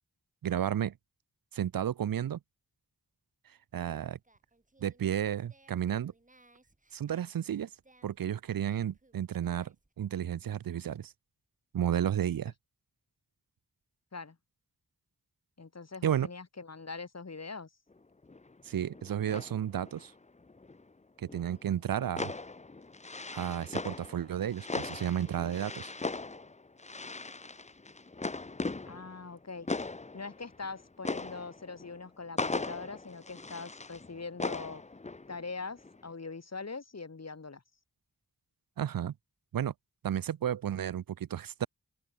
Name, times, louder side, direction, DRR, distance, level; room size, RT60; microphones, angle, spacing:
voice 1, 0.4-0.9 1.5-2.4 3.7-4.2 4.8-6.1 6.9-7.7 8.0-11.1 11.7-12.5 16.0-16.3 18.6-20.1 21.2-22.3 23.3-25.9 38.8-39.1 39.5-39.7 40.0-41.7, right 10 dB, 85° right, 0.6 m, -32 dB
Singing, 3.7-9.9, right 2 dB, 20° right, 3.2 m, -65 dB
voice 2, 15.6-17.7 28.8-29.7 30.1-34.8 35.3-37.6, left 4 dB, 50° left, 2.9 m, -42 dB
sound 1, 17.9-18.0 18.2-20.9 21.2-35.5 35.8-36.1, left 3 dB, 20° left, 0.7 m, -39 dB
open air
wide cardioid pair, 95°, 34 cm